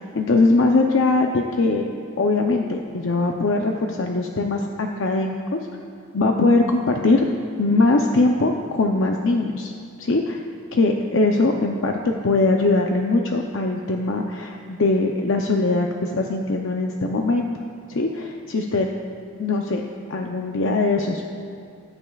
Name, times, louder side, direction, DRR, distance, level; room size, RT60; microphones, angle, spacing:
voice 1, 0.0-1.9 2.2-5.6 6.1-7.3 7.6-9.7 10.0-10.4 10.7-17.5 17.9-18.9 19.4-19.8 20.1-21.2, left 3 dB, 65° left, 2 dB, 0.6 m, -21 dB
20.5 x 9.0 x 2.4 m, 2.4 s
head